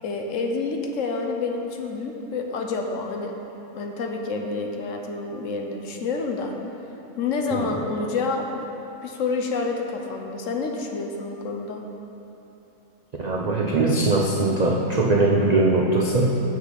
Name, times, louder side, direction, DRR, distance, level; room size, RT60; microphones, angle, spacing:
voice 1, 0.0-3.3 3.7-6.5 7.2-8.6 9.0-11.8, left 4 dB, 65° left, 2 dB, 1.0 m, -28 dB
voice 2, 13.2-16.4, right 2 dB, 55° right, -2 dB, 0.4 m, -21 dB
7.9 x 6.3 x 5.8 m, 3.0 s
omnidirectional pair, 1.6 m